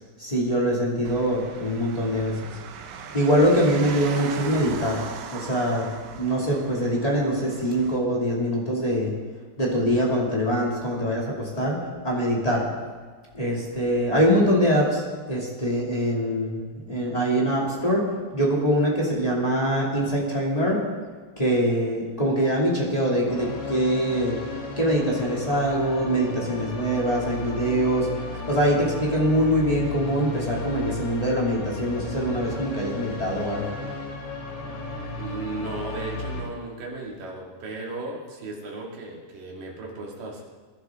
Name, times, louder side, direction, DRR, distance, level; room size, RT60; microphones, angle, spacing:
voice 1, 0.2-2.5 3.1-5.0 5.3-5.9 6.2-9.1 9.6-11.8 12.0-12.6 13.3-18.0 18.3-20.8 21.3-24.4 24.7-33.7, equal, 15° left, -4 dB, 1.4 m, -23 dB
sound 1, 1.1-8.0, right 6 dB, 85° right, 3.5 m, -39 dB
sound 2, 23.3-36.4, left 2 dB, 80° left, 4.4 m, -34 dB
voice 2, 35.2-40.4, right 2 dB, 55° right, -2 dB, 3.8 m, -35 dB
23.0 x 11.5 x 3.8 m, 1.5 s
omnidirectional pair, 5.1 m